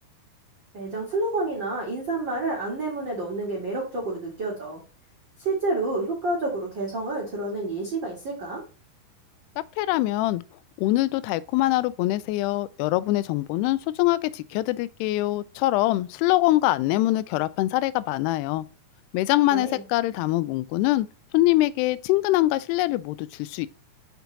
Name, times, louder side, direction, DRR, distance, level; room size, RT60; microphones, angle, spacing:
voice 1, 0.7-4.8 5.4-8.6 19.5-19.8, right 2 dB, 40° right, 1.7 m, -29 dB
voice 2, 9.8-10.4 10.8-18.7 19.1-21.1 21.3-23.7, left 17 dB, 90° left, 2.6 m, -23 dB
6.0 x 5.7 x 3.9 m
omnidirectional pair, 4.6 m